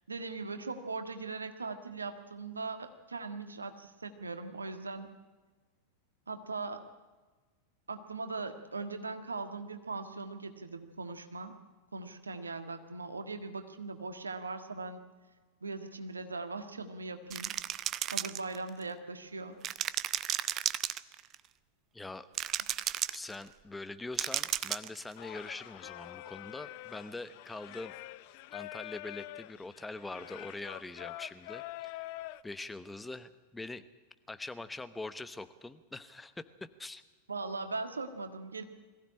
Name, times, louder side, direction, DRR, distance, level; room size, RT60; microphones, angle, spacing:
voice 1, 0.1-5.1 6.3-6.9 7.9-11.6 11.9-15.0 15.6-17.5 18.1-19.6 37.3-38.7, right 3 dB, 75° right, 8 dB, 1.6 m, -40 dB
sound 1, 17.3-18.8 19.6-21.3 22.3-23.3 24.2-25.0, right 12 dB, 30° right, 0.7 m, -33 dB
voice 2, 21.9-22.3 23.1-27.9 28.5-32.0 32.4-33.8 34.3-37.0, left 2 dB, 10° left, 12 dB, 0.9 m, -43 dB
Singing, 25.2-32.4, left 17 dB, 45° left, 0.6 m, -46 dB
22.0 x 15.5 x 9.9 m, 1.3 s
figure-of-eight pair, 90°, 0 cm